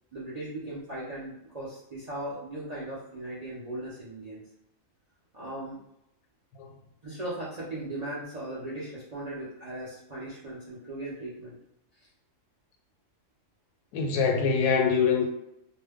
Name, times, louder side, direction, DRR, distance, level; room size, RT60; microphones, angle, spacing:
voice 1, 0.1-4.4 5.3-5.8 7.0-11.6, right 1 dB, 50° right, -8 dB, 0.4 m, -38 dB
voice 2, 13.9-15.3, left 6 dB, 80° left, 3 dB, 1.1 m, -24 dB
2.6 x 2.2 x 3.4 m, 0.83 s
omnidirectional pair, 1.6 m